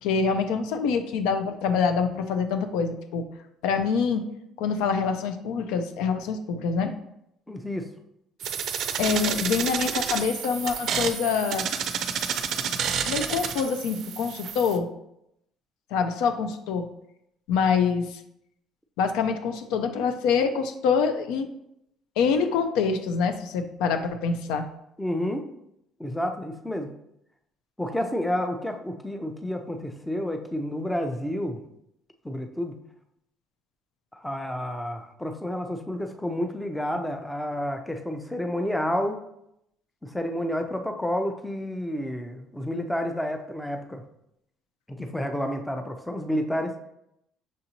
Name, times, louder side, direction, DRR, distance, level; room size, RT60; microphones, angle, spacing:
voice 1, 0.0-3.2 3.6-4.2 4.6-6.9 9.0-11.7 13.1-14.9 15.9-16.9 17.5-18.2 19.0-21.5 22.2-24.7, left 5 dB, 85° left, 8 dB, 0.4 m, -25 dB
voice 2, 7.5-7.9 25.0-25.5 26.0-26.9 27.8-31.6 32.2-32.8 34.1-39.2 40.0-44.0 44.9-46.8, left 1 dB, 5° left, 5 dB, 0.5 m, -30 dB
sound 1, 8.4-14.8, right 7 dB, 60° right, 0.4 m, -30 dB
6.0 x 2.6 x 2.9 m, 0.79 s
cardioid pair, 110°, 0 cm